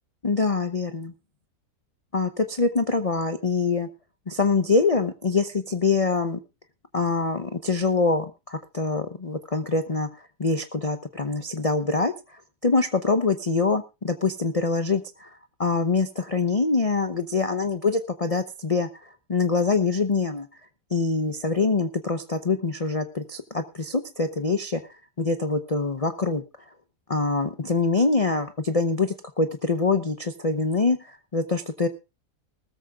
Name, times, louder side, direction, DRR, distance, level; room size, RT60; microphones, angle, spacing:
voice 1, 0.2-1.1 2.1-3.9 4.3-6.4 6.9-20.5 20.9-26.4 27.1-31.9, left 4 dB, 35° left, 9 dB, 0.6 m, -25 dB
19.5 x 14.0 x 2.4 m, 0.27 s
omnidirectional pair, 1.7 m